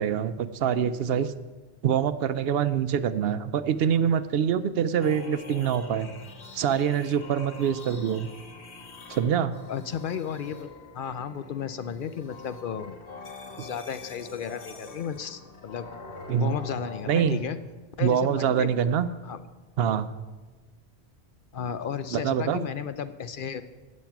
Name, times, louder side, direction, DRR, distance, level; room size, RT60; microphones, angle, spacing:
voice 1, 0.0-1.3 1.8-6.1 6.5-8.3 9.1-9.5 16.3-16.6 17.1-17.4 18.0-19.1 19.8-20.1 22.1-22.6, right 8 dB, 70° right, 13 dB, 0.8 m, -25 dB
sound 1, 5.0-17.4, left 4 dB, 85° left, 1.6 m, -44 dB
voice 2, 9.7-10.7 10.9-13.0 13.6-15.9 16.4-17.6 18.0-18.7 19.2-19.4 21.5-23.6, left 7 dB, 60° left, 12 dB, 0.7 m, -34 dB
16.5 x 6.4 x 5.9 m, 1.3 s
omnidirectional pair, 1.1 m